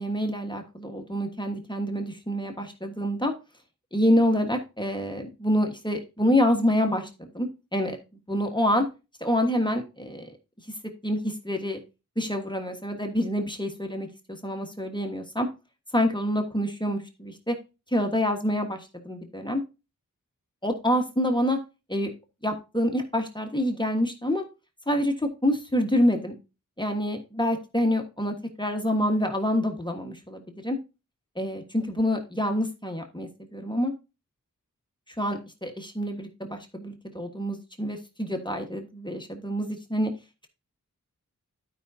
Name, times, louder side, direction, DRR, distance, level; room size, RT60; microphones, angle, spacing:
voice 1, 0.0-3.3 3.9-8.0 8.3-8.8 9.2-10.3 11.0-11.8 12.2-15.5 15.9-17.5 17.9-19.6 20.6-21.6 21.9-22.1 22.4-24.4 24.9-25.1 25.4-26.3 26.8-30.8 31.4-33.9 35.2-40.1, equal, 15° left, 4 dB, 1.4 m, -27 dB
12.0 x 5.3 x 2.7 m, 0.29 s
wide cardioid pair, 45°, 32 cm